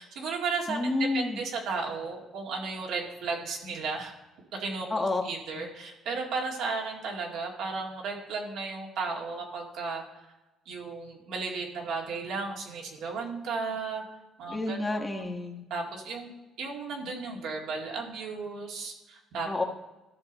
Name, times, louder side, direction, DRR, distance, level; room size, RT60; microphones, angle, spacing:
voice 1, 0.0-4.1 4.6-10.0 10.7-14.0 14.4-15.3 15.7-16.3 16.6-19.5, right 4 dB, 75° right, -1 dB, 2.0 m, -34 dB
voice 2, 0.7-1.4 4.9-5.2 5.6-5.7 14.5-15.6 19.4-19.6, left 2 dB, 20° left, 2 dB, 1.4 m, -30 dB
13.0 x 5.8 x 4.0 m, 1.0 s
cardioid pair, 85°, 0 cm